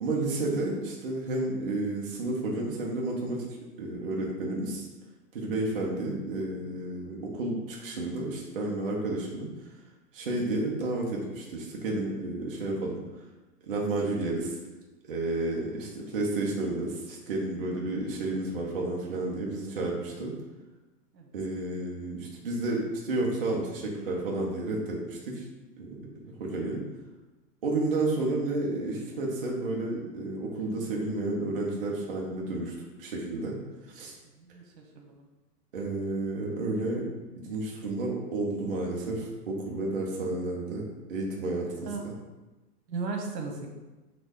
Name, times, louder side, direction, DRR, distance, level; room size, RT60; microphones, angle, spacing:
voice 1, 0.0-3.4 3.8-4.9 5.3-9.7 10.1-13.2 13.6-14.6 15.1-20.3 21.3-25.5 25.8-26.1 26.4-26.8 27.6-32.7 33.0-33.6 33.8-34.2 35.7-37.1 37.4-42.2, right 2 dB, 35° right, -3 dB, 0.6 m, -31 dB
voice 2, 34.9-35.3 41.8-42.1 42.9-43.7, right 4 dB, 85° right, 2 dB, 1.2 m, -36 dB
4.1 x 2.7 x 4.8 m, 1.1 s
hypercardioid pair, 175°, 49 cm